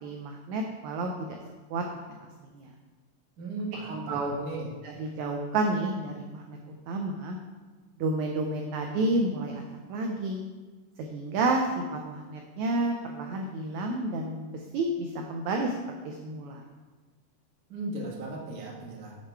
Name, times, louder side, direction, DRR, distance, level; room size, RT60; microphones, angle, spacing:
voice 1, 0.0-1.3 1.7-2.0 2.5-2.7 4.1-4.5 4.8-6.6 6.9-7.4 8.0-9.5 9.9-10.4 11.0-15.7 16.0-16.6, right 2 dB, 85° right, 2 dB, 1.6 m, -30 dB
voice 2, 3.4-4.7 17.7-19.1, right 2 dB, 65° right, -2 dB, 0.8 m, -36 dB
7.3 x 6.4 x 4.6 m, 1.3 s
omnidirectional pair, 4.0 m